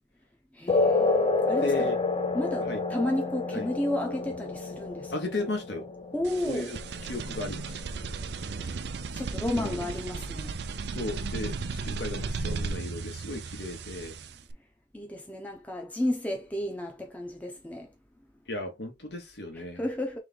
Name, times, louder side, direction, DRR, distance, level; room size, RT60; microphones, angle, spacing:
voice 1, 0.5-1.9 2.3-5.1 6.1-6.7 9.1-10.6 14.9-17.9 19.6-20.2, left 1 dB, 10° left, 0.8 m, -32 dB
sound 1, 0.7-7.7, left 3 dB, 30° left, 0.4 m, -29 dB
voice 2, 1.6-2.0 2.7-2.8 3.5-3.7 5.1-5.9 6.4-6.8 7.1-7.8 9.5-9.9 10.9-14.1 18.5-19.8, left 2 dB, 65° left, 1.2 m, -35 dB
sound 2, 6.2-14.5, right 4 dB, 65° right, 0.4 m, -35 dB
3.4 x 3.2 x 3.8 m
head